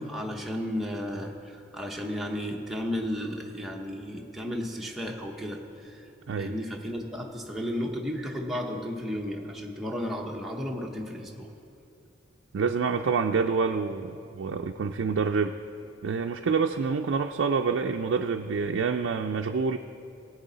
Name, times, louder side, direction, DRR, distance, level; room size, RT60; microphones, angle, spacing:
voice 1, 0.0-6.1 6.4-11.5, equal, ahead, -1 dB, 0.9 m, -33 dB
voice 2, 12.5-15.6 16.0-19.8, right 5 dB, 75° right, 4 dB, 0.4 m, -27 dB
18.0 x 8.3 x 4.0 m, 2.8 s
head